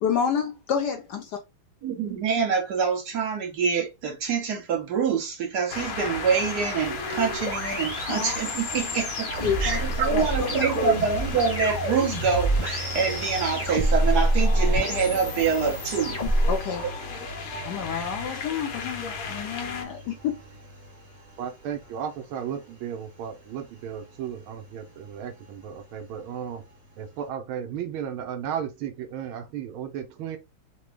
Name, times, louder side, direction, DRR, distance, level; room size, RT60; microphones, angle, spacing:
voice 1, 0.0-1.2 8.1-8.4 9.4-9.8 10.1-10.9 16.5-16.8 17.6-20.4, left 7 dB, 70° left, 1.0 m, -29 dB
voice 2, 1.8-16.2, right 6 dB, 60° right, 1.2 m, -26 dB
sound 1, 5.7-19.9, left 4 dB, 90° left, 1.6 m, -36 dB
sound 2, 6.8-16.6, right 1 dB, 30° left, 0.8 m, -27 dB
Engine, 9.3-27.3, right 3 dB, 45° right, 1.7 m, -40 dB
voice 3, 21.4-26.6 27.0-30.4, right 8 dB, 85° right, 1.5 m, -34 dB
4.0 x 2.2 x 3.1 m
omnidirectional pair, 2.2 m